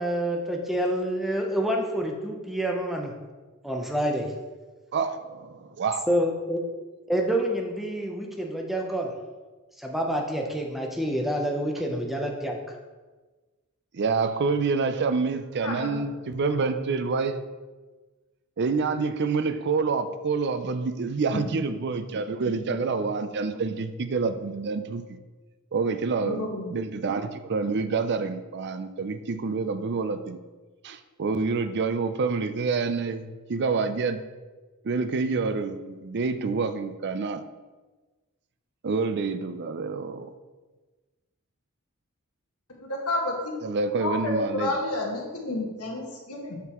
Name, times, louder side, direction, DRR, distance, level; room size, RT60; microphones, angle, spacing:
voice 1, 0.0-3.1 3.6-4.3 6.1-6.6 7.1-9.1 9.8-12.6, right 1 dB, ahead, 1 dB, 0.6 m, -27 dB
voice 2, 4.9-6.1 13.9-17.4 18.6-25.0 25.7-30.4 30.8-34.2 34.8-37.4 38.8-40.3 43.6-44.7, right 4 dB, 50° right, 10 dB, 0.5 m, -27 dB
voice 3, 15.6-16.0 21.3-21.4 22.5-22.8 26.2-26.7 42.8-43.3 44.0-46.6, left 2 dB, 80° left, -1 dB, 1.7 m, -30 dB
6.8 x 6.7 x 3.0 m, 1.3 s
head